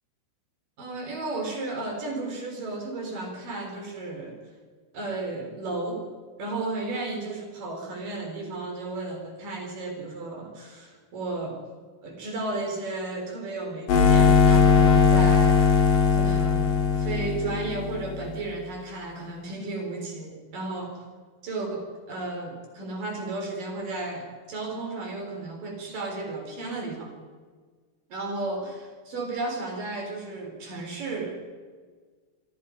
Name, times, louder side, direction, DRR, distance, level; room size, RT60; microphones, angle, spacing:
voice 1, 0.8-4.4 4.9-6.1 6.4-11.6 12.0-15.6 16.1-21.0 21.4-27.1 28.1-28.8 29.1-31.4, right 2 dB, 50° right, 2 dB, 5.4 m, -33 dB
sound 1, 13.9-18.3, left 6 dB, 50° left, 3.8 m, -19 dB
26.5 x 24.5 x 5.2 m, 1.5 s
omnidirectional pair, 5.3 m